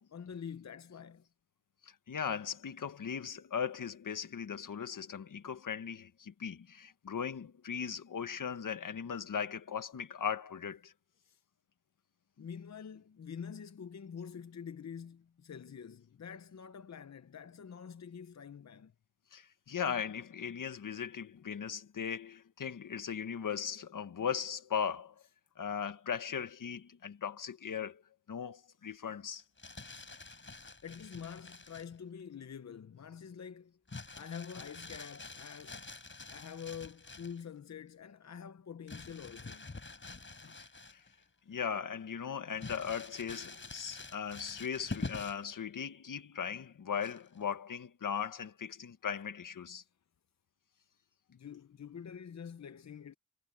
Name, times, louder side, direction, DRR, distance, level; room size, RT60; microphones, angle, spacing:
voice 1, 0.1-1.2 11.3-11.4 12.4-18.9 30.8-33.8 34.2-35.8 36.3-39.6 40.4-40.6 51.3-53.1, left 7 dB, 60° left, 0.9 m, -46 dB
voice 2, 1.8-10.9 19.3-25.1 25.6-28.0 28.3-29.4 40.6-40.7 40.9-41.0 41.5-49.8, left 7 dB, 80° left, 1.6 m, -38 dB
Crumpling crinkling, 29.4-32.0 33.9-37.4 38.9-41.2 41.6-41.7 42.6-45.5 47.0-47.4, left 3 dB, 40° left, 4.4 m, -46 dB
wide cardioid pair, 75°, 31 cm